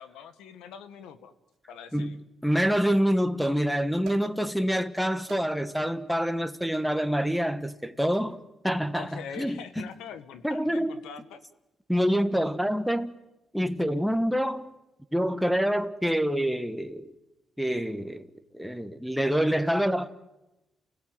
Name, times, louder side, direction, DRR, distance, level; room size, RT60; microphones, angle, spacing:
voice 1, 0.0-1.3 1.7-2.2 8.9-11.4, left 7 dB, 90° left, 1.7 m, -43 dB
sound 1, 1.5-1.6 2.7-3.3 4.0-4.7 5.3-5.8 6.7-7.0 8.1-8.5 9.7-10.1, right 7 dB, 75° right, 2.6 m, -51 dB
voice 2, 2.4-8.4 8.6-9.9 10.4-11.0 11.9-13.2 13.5-14.7 15.1-17.1 17.6-18.3 18.5-20.1, equal, ahead, 1.4 m, -26 dB
29.5 x 17.0 x 9.4 m
cardioid pair, 90°, 0 cm